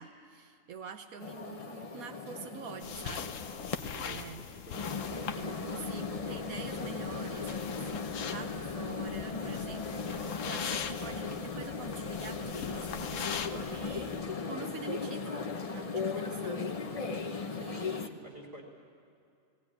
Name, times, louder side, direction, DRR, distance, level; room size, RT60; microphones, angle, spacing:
voice 1, 0.0-3.3 3.9-4.4 5.4-14.1 14.4-15.4 15.7-16.7 17.5-18.0, right 6 dB, 80° right, 7 dB, 1.3 m, -46 dB
sound 1, 1.2-4.0 4.7-18.1, left 4 dB, 30° left, 0.8 m, -37 dB
sound 2, 2.8-14.2, left 8 dB, 65° left, 1.1 m, -42 dB
voice 2, 3.9-4.9 16.1-16.9 17.5-18.6, right 1 dB, 15° right, 0 dB, 2.9 m, -52 dB
18.5 x 17.5 x 9.7 m, 2.5 s
omnidirectional pair, 1.5 m